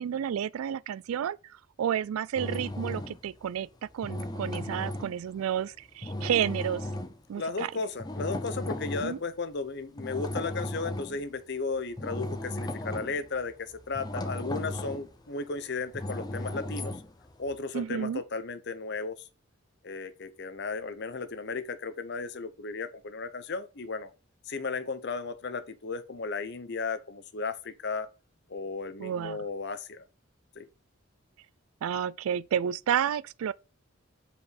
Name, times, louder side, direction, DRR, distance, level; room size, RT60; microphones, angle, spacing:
voice 1, 0.0-1.4 1.8-3.7 3.9-6.9 7.3-7.7 9.0-9.2 17.7-18.2 29.0-29.4 31.8-33.5, right 9 dB, 85° right, 0.3 m, -30 dB
sound 1, 2.3-3.4 3.9-5.6 6.0-7.2 8.0-9.2 10.0-11.3 11.8-17.5, left 1 dB, 20° left, 0.6 m, -36 dB
voice 2, 7.4-17.0 17.4-19.3 19.8-24.1 24.4-28.1 28.5-30.0 30.6-30.7, left 4 dB, 55° left, 0.8 m, -35 dB
5.3 x 4.8 x 4.9 m
head